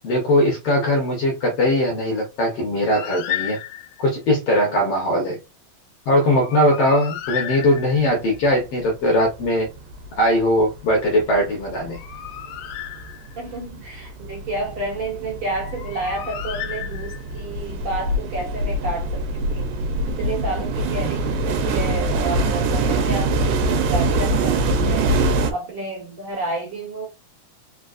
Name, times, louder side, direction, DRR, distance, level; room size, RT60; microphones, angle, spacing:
voice 1, 0.0-3.6 4.0-5.4 6.1-9.7 10.2-12.0, equal, 60° left, 1.8 m, -20 dB
Bird, 2.9-4.1 6.2-8.2 11.7-13.5 15.5-17.4, left 12 dB, 80° left, 2.0 m, -33 dB
sound 1, 8.8-8.9 9.2-10.2 10.5-25.5, right 2 dB, 80° right, 2.3 m, -24 dB
voice 2, 13.4-19.8 20.1-25.1 25.5-27.1, right 2 dB, 50° right, 2.2 m, -30 dB
4.7 x 4.0 x 2.5 m
omnidirectional pair, 3.7 m